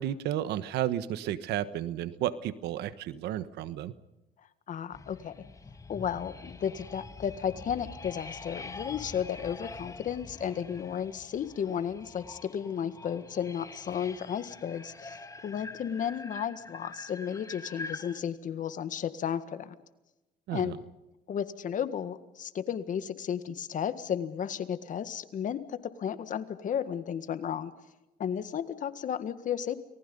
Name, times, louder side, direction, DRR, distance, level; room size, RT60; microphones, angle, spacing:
voice 1, 0.0-3.9 20.5-20.8, right 12 dB, 80° right, 14 dB, 1.3 m, -32 dB
voice 2, 4.7-5.3 5.9-19.8 20.5-20.7 21.3-27.7 28.2-29.7, left 8 dB, 50° left, 11 dB, 1.8 m, -33 dB
sound 1, 4.9-18.2, left 3 dB, 20° left, 1.9 m, -45 dB
29.5 x 19.5 x 5.4 m, 0.98 s
cardioid pair, 110°, 17 cm